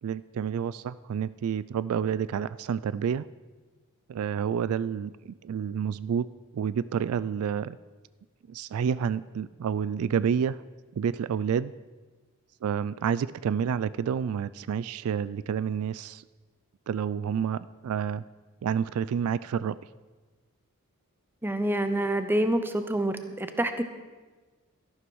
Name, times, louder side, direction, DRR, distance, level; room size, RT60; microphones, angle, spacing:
voice 1, 0.0-3.2 4.1-6.3 6.5-7.8 8.5-10.6 10.9-11.7 12.6-16.2 16.9-18.2 18.6-19.8, right 7 dB, 75° right, 18 dB, 0.3 m, -29 dB
voice 2, 21.4-23.8, right 1 dB, 10° right, 9 dB, 0.7 m, -27 dB
13.0 x 11.5 x 4.7 m, 1.3 s
head